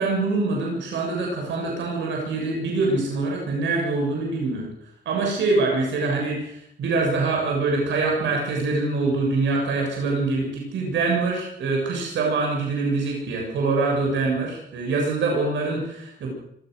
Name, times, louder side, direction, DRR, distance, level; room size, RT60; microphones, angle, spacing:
voice 1, 0.0-4.7 5.1-16.3, right 3 dB, 80° right, -1 dB, 7.3 m, -24 dB
26.5 x 18.5 x 6.6 m, 0.77 s
cardioid pair, 110°, 19 cm